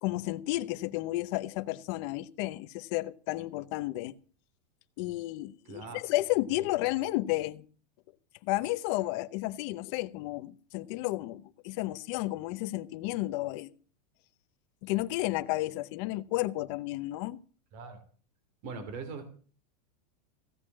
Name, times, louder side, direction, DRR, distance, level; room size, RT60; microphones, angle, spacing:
voice 1, 0.0-4.1 5.0-7.6 8.4-13.7 14.8-17.4, left 18 dB, 40° left, 0.9 m, -32 dB
voice 2, 5.7-6.0 17.7-18.0 18.6-19.5, right 4 dB, 40° right, 3.0 m, -41 dB
15.5 x 6.8 x 7.3 m
supercardioid pair, 165°, 21 cm